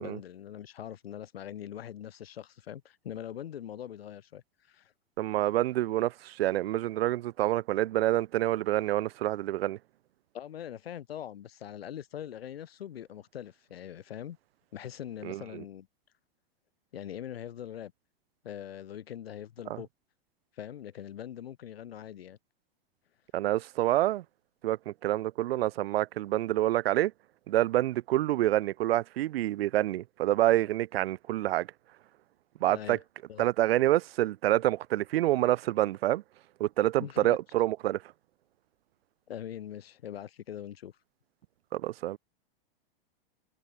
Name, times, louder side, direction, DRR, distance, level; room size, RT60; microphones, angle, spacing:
voice 1, 0.0-4.9 10.3-14.4 14.7-15.9 16.9-17.9 18.4-19.9 20.6-22.4 32.7-33.0 33.3-33.5 37.0-37.4 39.3-40.9, left 10 dB, 85° left, 2.3 m, -42 dB
voice 2, 5.2-9.8 15.2-15.6 19.7-19.8 23.3-24.2 24.6-27.1 27.5-31.7 32.6-33.0 33.4-36.2 36.6-38.0 41.7-42.2, right 15 dB, 85° right, 0.5 m, -27 dB
hypercardioid pair, 125°, 29 cm